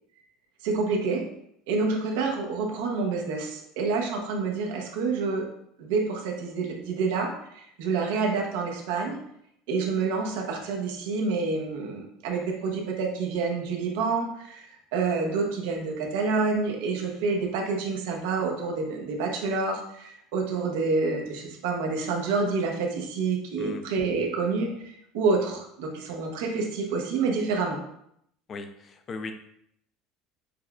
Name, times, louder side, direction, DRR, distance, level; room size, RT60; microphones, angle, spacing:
voice 1, 0.6-1.3 1.7-5.5 5.8-9.2 9.7-27.8, right 4 dB, 90° right, 1 dB, 0.8 m, -28 dB
voice 2, 28.5-29.3, left 3 dB, 25° left, 7 dB, 0.3 m, -37 dB
6.5 x 2.2 x 2.4 m, 0.73 s
cardioid pair, 175°, 0 cm